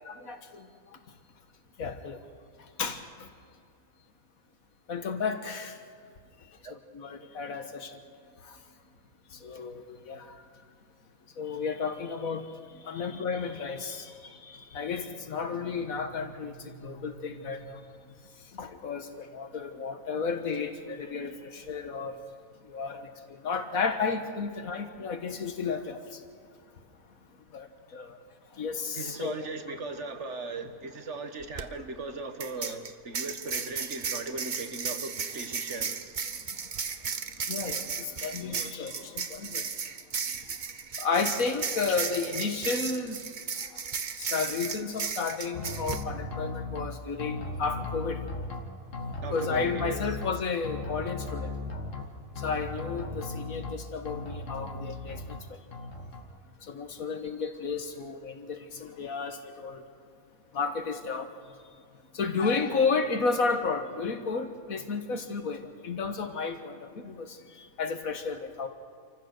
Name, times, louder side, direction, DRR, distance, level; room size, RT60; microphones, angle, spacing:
voice 1, 0.1-0.7 1.8-2.2 2.8-3.0 4.9-5.8 6.7-8.0 9.4-10.3 11.4-12.5 12.8-17.8 18.5-22.2 22.7-26.2 27.5-28.2 28.6-29.8 32.6-32.8 33.7-33.9 37.5-39.6 41.0-43.2 44.2-48.2 49.3-51.5 52.4-55.2 56.6-59.8 60.5-61.3 62.1-68.7, left 5 dB, 90° left, 7 dB, 1.9 m, -32 dB
voice 2, 28.9-36.1 49.2-50.0, right 3 dB, 60° right, 7 dB, 1.6 m, -38 dB
sound 1, 31.4-31.6 32.4-46.0, right 6 dB, 40° right, 0.9 m, -35 dB
sound 2, 45.5-46.9 47.2-48.6 48.9-50.3 50.6-52.0 52.4-53.7 54.1-55.4 55.7-56.2, left 3 dB, 65° left, 2.0 m, -36 dB
27.5 x 15.0 x 6.6 m, 2.2 s
omnidirectional pair, 1.4 m